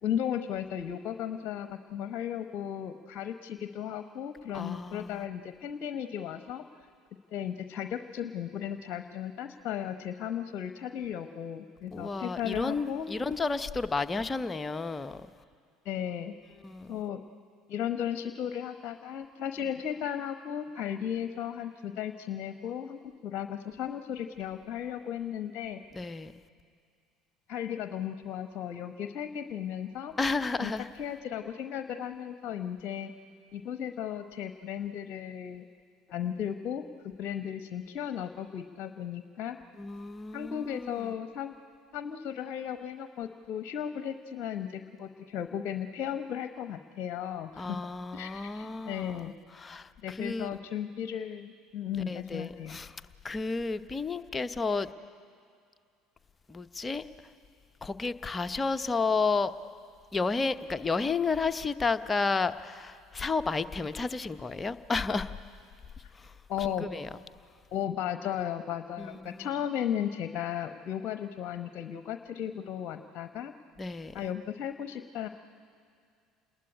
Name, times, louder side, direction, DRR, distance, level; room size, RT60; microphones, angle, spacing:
voice 1, 0.0-6.6 7.3-13.1 15.8-16.5 16.9-17.2 17.7-25.8 27.5-30.1 30.6-33.1 33.5-35.7 36.1-39.6 40.3-41.5 41.9-47.8 48.1-49.3 50.0-52.8 66.5-66.9 67.7-73.5 74.1-75.3, left 9 dB, 50° left, 9 dB, 1.0 m, -35 dB
voice 2, 4.5-5.3 11.9-15.3 16.6-16.9 25.9-26.3 30.2-30.9 39.8-41.1 47.6-49.2 49.6-50.5 51.9-53.0 53.2-54.9 56.5-57.1 57.8-59.5 60.1-65.3 66.2-67.1 69.0-69.5 73.8-74.1, left 4 dB, 20° left, 10 dB, 1.0 m, -32 dB
29.0 x 20.0 x 9.8 m, 2.3 s
figure-of-eight pair, 60°, 0 cm